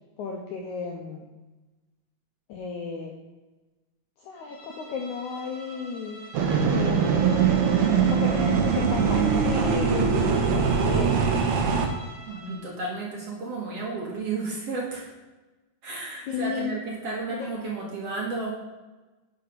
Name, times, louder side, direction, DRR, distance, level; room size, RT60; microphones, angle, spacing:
voice 1, 0.2-1.3 2.5-3.1 4.2-6.2 6.7-7.5 8.0-11.2 16.3-16.7 17.3-17.5, left 5 dB, 75° left, 0 dB, 1.8 m, -34 dB
Bowed string instrument, 4.3-12.7, right 1 dB, 55° left, 3.8 m, -45 dB
sound 1, 6.3-11.8, right 6 dB, 70° right, 1.8 m, -22 dB
voice 2, 12.3-15.1 15.8-18.5, right 3 dB, 50° right, -3 dB, 2.1 m, -32 dB
10.5 x 5.9 x 5.3 m, 1.2 s
omnidirectional pair, 4.5 m